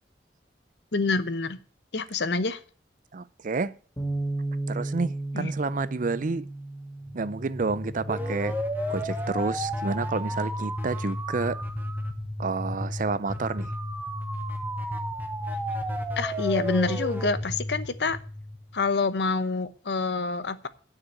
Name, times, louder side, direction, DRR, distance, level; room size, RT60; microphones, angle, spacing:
voice 1, 0.9-1.6 1.9-2.6 5.3-5.5 16.2-18.2 18.7-20.7, left 3 dB, 70° left, 0.9 m, -27 dB
voice 2, 3.1-3.8 4.7-6.5 7.1-8.5 8.9-11.6 12.4-13.7, right 4 dB, 45° right, 0.5 m, -29 dB
Bass guitar, 4.0-8.4 9.0-10.2, right 2 dB, 20° left, 1.7 m, -35 dB
sound 1, 7.1-18.9, equal, 10° right, 1.2 m, -32 dB
9.7 x 6.7 x 8.2 m
head